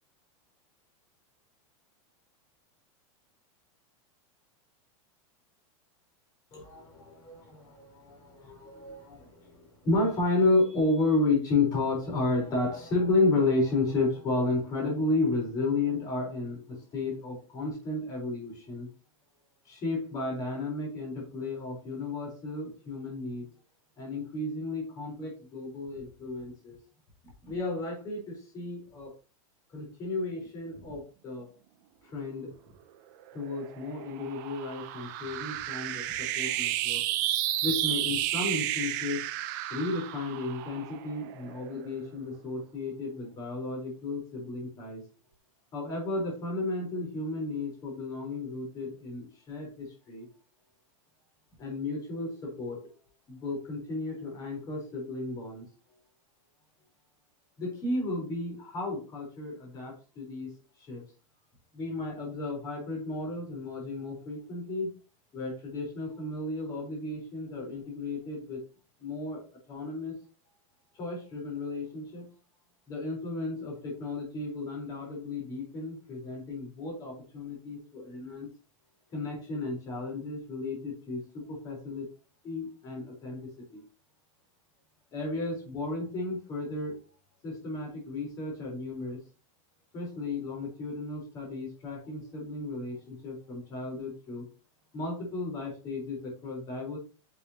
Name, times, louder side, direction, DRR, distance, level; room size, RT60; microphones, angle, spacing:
voice 1, 6.5-18.9 19.7-23.5 24.0-26.8 27.4-29.1 29.7-31.5 32.0-32.5 33.3-37.1 37.6-39.3 39.7-45.0 45.7-50.3 51.6-52.8 53.3-55.7 57.6-60.5 60.8-61.0 61.7-64.9 65.3-68.6 69.0-70.1 71.0-72.2 72.9-78.5 79.1-82.1 82.4-83.4 83.7-83.8 85.1-86.9 87.4-89.2 89.9-94.5 94.9-97.0, left 2 dB, 20° left, -1 dB, 4.1 m, -33 dB
sound 1, 33.3-41.9, right 13 dB, 35° right, 0.8 m, -32 dB
9.9 x 6.7 x 2.9 m, 0.33 s
supercardioid pair, 180°, 17 cm